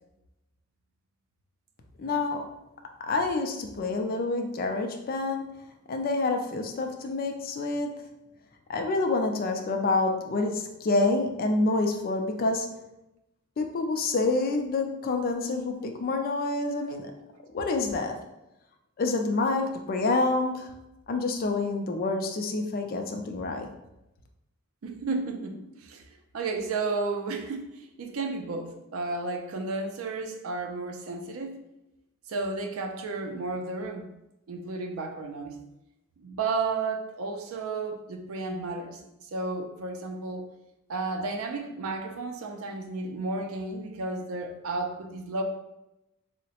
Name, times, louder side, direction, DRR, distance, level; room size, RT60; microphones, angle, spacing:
voice 1, 2.0-2.5 3.0-5.5 5.9-8.1 8.7-12.7 13.6-17.1 17.5-18.2 19.0-20.8 21.1-23.7, left 3 dB, 45° left, 4 dB, 0.4 m, -27 dB
voice 2, 24.8-26.0 26.3-31.6 32.3-34.1 34.5-35.6 36.2-39.0 39.3-40.5 40.9-45.4, right 3 dB, 75° right, 5 dB, 0.4 m, -32 dB
3.7 x 2.1 x 2.8 m, 0.91 s
head